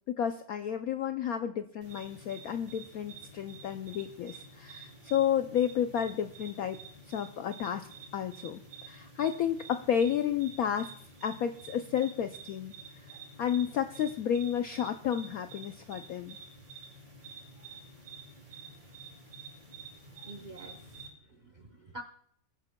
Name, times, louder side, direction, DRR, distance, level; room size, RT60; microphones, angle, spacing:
voice 1, 0.1-6.8 7.1-10.9 11.2-12.7 13.4-16.4, left 9 dB, 80° left, 8 dB, 0.8 m, -31 dB
sound 1, 1.8-21.1, right 3 dB, 25° right, 3.3 m, -50 dB
voice 2, 20.2-22.0, right 1 dB, 90° right, 5 dB, 0.4 m, -47 dB
21.5 x 9.6 x 2.2 m, 0.66 s
omnidirectional pair, 2.1 m